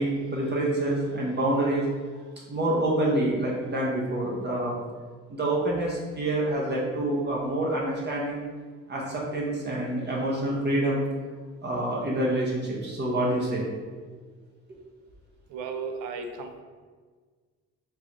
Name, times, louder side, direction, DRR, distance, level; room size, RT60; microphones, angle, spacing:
voice 1, 0.0-1.8 2.5-4.8 5.3-8.4 8.9-11.0 11.6-13.7, right 1 dB, 35° right, -4 dB, 0.9 m, -27 dB
voice 2, 15.5-16.6, right 4 dB, 90° right, 5 dB, 0.5 m, -35 dB
3.8 x 2.7 x 3.0 m, 1.5 s
cardioid pair, 90°, 30 cm